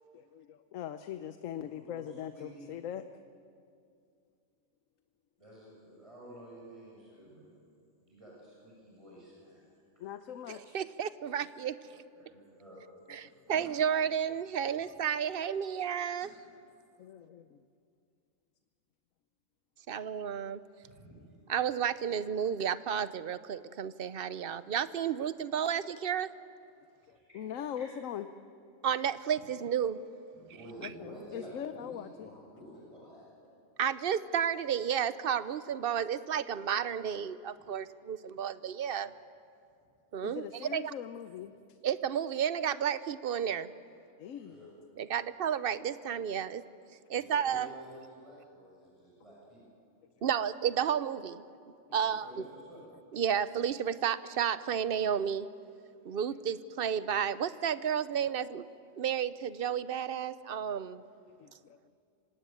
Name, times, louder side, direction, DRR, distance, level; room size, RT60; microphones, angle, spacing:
voice 1, 0.1-3.0 10.0-10.8 17.0-17.6 20.0-20.1 27.1-28.3 30.8-32.3 40.2-41.5 44.2-44.6 61.4-61.8, left 9 dB, 85° left, 10 dB, 1.1 m, -41 dB
voice 2, 1.6-2.7 5.4-7.5 8.0-9.6 12.2-12.8 13.5-13.7 14.4-14.5 15.2-15.6 16.2-16.4 20.8-21.2 27.0-27.5 27.8-27.9 30.3-33.3 44.4-44.7 47.1-49.6 51.9-52.9, equal, 25° right, -5 dB, 7.1 m, -51 dB
voice 3, 10.5-12.0 13.1-16.3 19.9-20.6 21.5-26.3 28.8-30.0 33.8-39.1 40.1-40.9 41.8-43.7 45.0-46.6 47.1-47.7 50.2-51.4 51.9-52.3 53.1-55.5 56.0-58.6 59.0-61.0, right 8 dB, 55° right, 15 dB, 0.8 m, -32 dB
25.5 x 17.0 x 9.2 m, 2.4 s
omnidirectional pair, 1.3 m